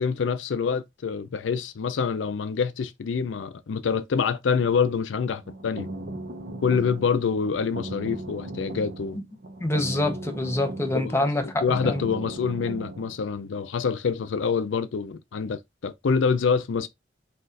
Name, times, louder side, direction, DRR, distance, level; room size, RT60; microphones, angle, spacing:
voice 1, 0.0-5.9 6.6-9.2 10.9-16.9, left 5 dB, 85° left, 0.4 m, -26 dB
sound 1, 5.4-13.2, right 1 dB, 55° right, 0.8 m, -37 dB
voice 2, 9.6-12.0, left 1 dB, 15° left, 0.7 m, -26 dB
4.2 x 2.5 x 3.9 m
head